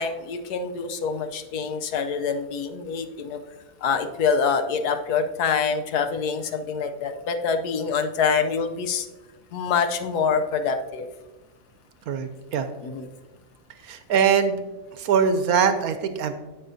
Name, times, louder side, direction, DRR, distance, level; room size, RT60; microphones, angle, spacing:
voice 1, 0.0-3.4 3.8-9.1 9.5-11.1 12.8-13.1, left 6 dB, 75° left, 7 dB, 1.2 m, -25 dB
voice 2, 12.1-12.7 13.8-14.6 14.9-16.3, right 7 dB, 70° right, 9 dB, 1.1 m, -22 dB
16.0 x 5.6 x 2.7 m, 1.2 s
omnidirectional pair, 1.8 m